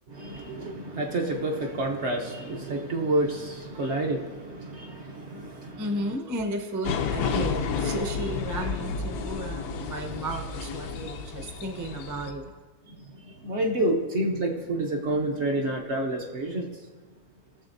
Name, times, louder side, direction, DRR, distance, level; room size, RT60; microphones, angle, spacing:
voice 1, 0.1-6.1 7.4-7.5 8.2-8.3 10.1-10.2 10.9-11.0 11.6-12.0 12.9-16.9, right 1 dB, 50° right, 1 dB, 1.0 m, -29 dB
voice 2, 5.8-12.4, right 1 dB, 15° right, 3 dB, 0.6 m, -33 dB
sound 1, 6.8-12.3, left 5 dB, 80° left, 1.2 m, -31 dB
20.5 x 7.1 x 2.6 m, 1.4 s
omnidirectional pair, 1.6 m